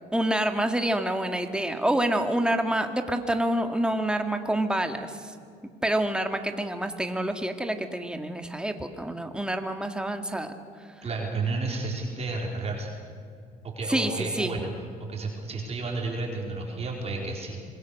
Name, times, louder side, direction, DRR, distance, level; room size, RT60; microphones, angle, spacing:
voice 1, 0.1-5.3 5.8-10.5 13.9-14.5, right 1 dB, 5° right, 6 dB, 1.9 m, -27 dB
voice 2, 11.0-12.9 13.6-14.7 15.1-17.6, right 3 dB, 40° right, -1 dB, 4.3 m, -31 dB
26.0 x 21.5 x 6.5 m, 2.2 s
cardioid pair, 110°, 17 cm